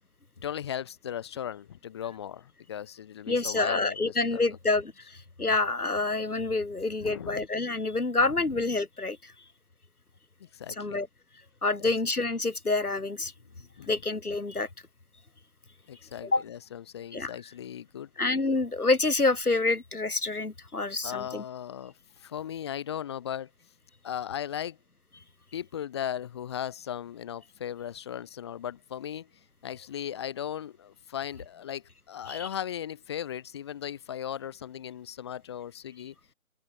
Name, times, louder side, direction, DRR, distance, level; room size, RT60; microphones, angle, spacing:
voice 1, 0.4-4.4 7.0-7.5 10.4-11.0 11.8-11.9 13.6-13.9 15.9-18.1 21.0-23.5 24.0-24.8 25.5-29.3 29.6-36.1, left 10 dB, 20° left, 4.6 m, -37 dB
voice 2, 3.3-9.3 10.8-11.1 11.6-13.3 13.9-14.7 16.2-16.4 17.1-17.3 18.2-21.4 32.3-32.5, left 3 dB, 85° left, 4.8 m, -27 dB
open air
figure-of-eight pair, 170°, 43 cm